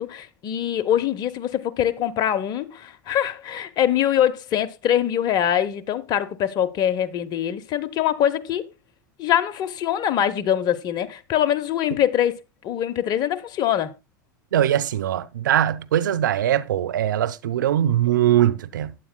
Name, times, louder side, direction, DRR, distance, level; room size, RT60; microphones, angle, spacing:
voice 1, 0.0-8.7 9.2-12.4 12.6-13.9, left 10 dB, 45° left, 0.9 m, -23 dB
voice 2, 14.5-19.0, right 11 dB, 80° right, 0.6 m, -21 dB
15.0 x 9.0 x 2.2 m
hypercardioid pair, 85°, 10 cm